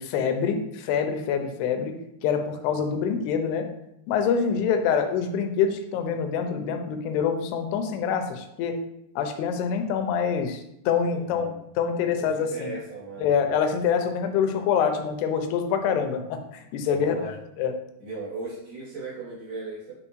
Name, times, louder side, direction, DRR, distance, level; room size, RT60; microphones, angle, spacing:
voice 1, 0.0-1.9 2.2-3.7 4.1-8.8 9.2-11.5 11.8-12.7 13.2-17.1 17.6-17.7, left 7 dB, 90° left, 6 dB, 2.7 m, -25 dB
voice 2, 11.0-11.6 12.1-13.4 16.9-17.4 18.0-19.9, right 3 dB, 70° right, -10 dB, 4.6 m, -37 dB
8.9 x 3.9 x 3.0 m, 0.79 s
omnidirectional pair, 4.6 m